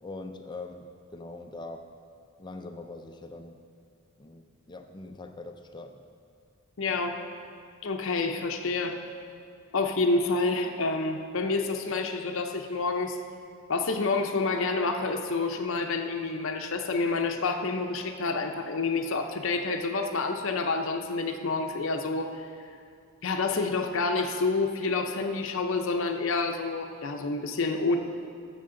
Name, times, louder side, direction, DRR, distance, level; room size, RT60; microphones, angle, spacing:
voice 1, 0.0-1.8 2.4-3.6 4.2-4.4 4.7-6.0, left 2 dB, 20° left, 5 dB, 0.5 m, -42 dB
voice 2, 6.8-7.2 7.8-9.0 9.7-13.2 13.7-22.5 23.2-28.0, left 3 dB, 60° left, 4 dB, 0.6 m, -28 dB
14.5 x 6.5 x 3.8 m, 2.3 s
head